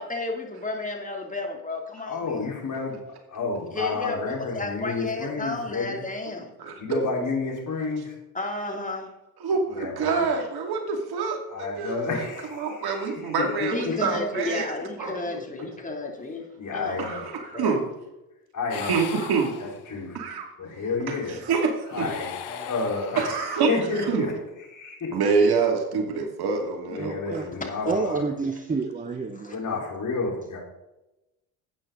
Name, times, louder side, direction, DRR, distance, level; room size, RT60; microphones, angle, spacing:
voice 1, 0.0-2.4 3.7-6.5 8.3-9.1 13.7-16.5 16.7-17.2 17.5-17.8 22.0-22.7 27.6-28.0 29.3-29.6, left 2 dB, 15° left, 1 dB, 2.8 m, -33 dB
voice 2, 2.1-3.0 3.3-6.0 6.8-8.1 9.7-10.3 11.5-14.2 14.8-15.1 16.6-17.3 18.5-18.9 19.6-20.2 20.6-21.4 21.9-22.4 22.6-24.3 24.6-25.2 26.9-28.3 29.5-30.6, left 4 dB, 40° left, -1 dB, 4.2 m, -31 dB
voice 3, 6.6-7.0 9.4-11.4 11.8-14.7 15.0-15.1 17.0-17.9 18.8-19.5 20.1-20.5 21.1-22.1 23.2-23.7 24.1-24.3 25.1-27.4, right 5 dB, 55° right, 3 dB, 2.6 m, -26 dB
sound 1, 18.7-20.2 21.8-23.6, left 10 dB, 60° left, 1.3 m, -38 dB
voice 4, 27.0-27.5 27.9-29.6, right 4 dB, 20° right, 6 dB, 1.0 m, -29 dB
12.0 x 8.9 x 3.9 m, 0.97 s
hypercardioid pair, 60°, 44 cm